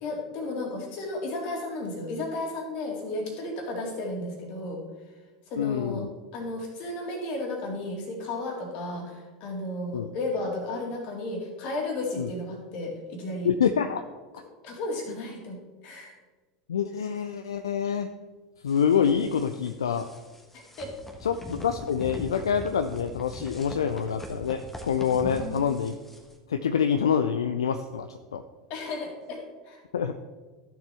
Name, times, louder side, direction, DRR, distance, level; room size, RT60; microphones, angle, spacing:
voice 1, 0.0-4.8 5.5-6.0 6.3-13.5 14.3-16.2 20.5-20.9 25.3-25.6 28.7-29.8, left 2 dB, 45° left, 1 dB, 2.4 m, -34 dB
voice 2, 5.6-6.1 9.9-10.1 12.2-12.3 13.4-14.0 16.7-18.1 18.6-20.1 21.2-26.0 26.5-28.4 29.9-30.1, left 7 dB, 70° left, 9 dB, 0.4 m, -26 dB
sound 1, 18.7-26.3, left 1 dB, 10° left, 1.4 m, -42 dB
14.0 x 6.9 x 3.4 m, 1.3 s
figure-of-eight pair, 80°, 3 cm